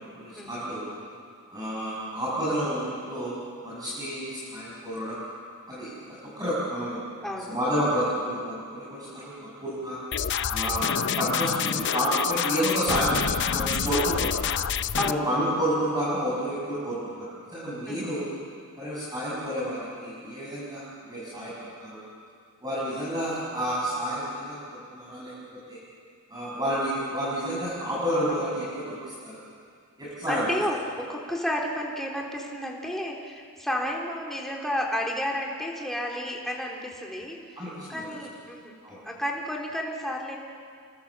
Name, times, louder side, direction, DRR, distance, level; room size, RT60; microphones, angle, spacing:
voice 1, 0.2-0.9 1.5-5.2 5.7-7.0 7.5-10.0 10.5-14.4 15.0-18.2 18.8-22.0 22.6-24.6 24.9-25.3 25.7-25.8 26.3-29.4 30.0-30.5 37.6-38.1 38.8-39.0, equal, 20° right, -8 dB, 6.6 m, -30 dB
voice 2, 7.2-7.5 10.7-10.9 15.0-15.4 17.9-18.1 28.3-28.5 30.3-37.6 37.9-38.7 39.0-40.4, equal, ahead, -1 dB, 3.4 m, -32 dB
sound 1, 10.1-15.1, left 8 dB, 55° left, 0.6 m, -27 dB
27.0 x 24.0 x 7.3 m, 2.2 s
head